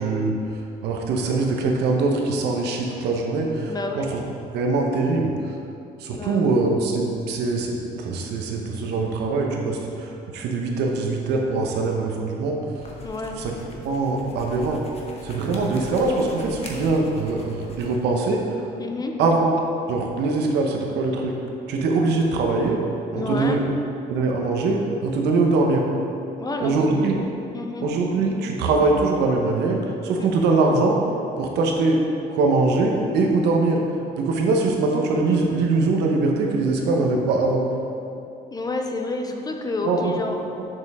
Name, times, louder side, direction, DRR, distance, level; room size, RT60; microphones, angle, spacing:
voice 1, 0.0-5.5 6.0-12.6 13.4-14.8 15.2-18.7 19.2-19.5 19.9-21.4 21.7-22.8 23.1-23.6 24.1-25.9 26.6-27.2 27.8-31.0 31.4-32.0 32.3-33.8 34.2-37.6 39.8-40.1 40.6-40.7, right 3 dB, 80° right, 1 dB, 1.1 m, -22 dB
voice 2, 3.7-4.1 6.1-6.5 10.6-10.9 13.0-13.4 18.8-19.2 23.1-23.6 26.4-26.8 27.5-27.9 30.2-30.3 38.5-40.4, left 2 dB, 20° left, 3 dB, 0.6 m, -29 dB
sound 1, 12.7-18.0, left 3 dB, 40° left, 1.1 m, -41 dB
6.8 x 6.8 x 3.6 m, 2.6 s
cardioid pair, 110°, 17 cm